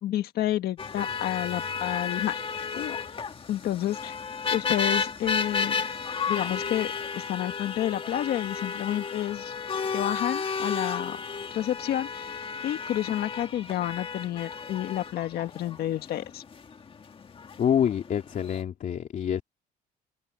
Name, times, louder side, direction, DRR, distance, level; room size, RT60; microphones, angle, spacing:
voice 1, 0.0-2.4 2.8-3.0 3.5-4.2 4.5-5.7 6.3-9.5 9.9-11.2 11.5-16.4, left 12 dB, 65° left, 1.7 m, -30 dB
sound 1, 0.8-18.6, left 5 dB, 30° left, 2.0 m, -33 dB
voice 2, 17.6-19.4, left 9 dB, 50° left, 3.0 m, -26 dB
cardioid pair, 110°, 17 cm